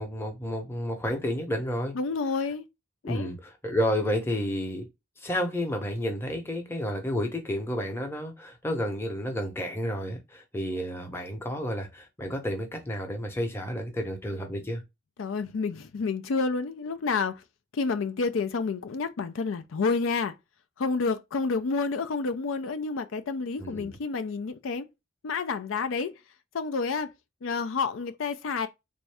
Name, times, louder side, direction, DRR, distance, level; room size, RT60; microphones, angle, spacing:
voice 1, 0.0-1.9 3.0-4.9 5.2-14.8 23.6-24.0, equal, 10° left, 0.7 m, -31 dB
voice 2, 1.9-2.7 3.0-3.3 15.2-17.4 17.7-20.4 20.8-24.9 25.2-26.1 26.5-27.1 27.4-28.7, left 4 dB, 85° left, 0.4 m, -29 dB
3.6 x 2.6 x 3.3 m
head